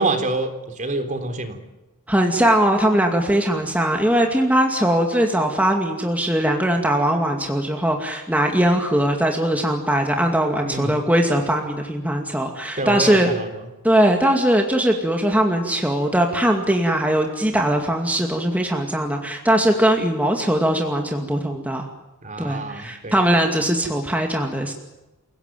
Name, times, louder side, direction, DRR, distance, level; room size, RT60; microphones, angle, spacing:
voice 1, 0.0-1.6 10.6-10.9 12.8-13.5 22.2-23.2, right 2 dB, 35° right, 7 dB, 3.5 m, -26 dB
voice 2, 2.1-13.3 13.8-21.9 22.4-24.7, right 1 dB, 5° right, 2 dB, 2.3 m, -20 dB
29.0 x 18.0 x 9.3 m, 1.0 s
head